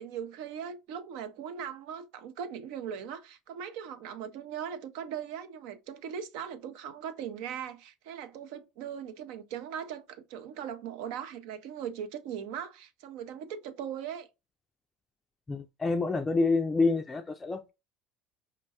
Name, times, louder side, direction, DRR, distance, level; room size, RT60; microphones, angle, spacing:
voice 1, 0.0-14.3, right 8 dB, 70° right, 0.4 m, -39 dB
voice 2, 15.5-17.7, left 3 dB, 25° left, 0.3 m, -27 dB
4.7 x 2.2 x 2.7 m
hypercardioid pair, 75°, 0 cm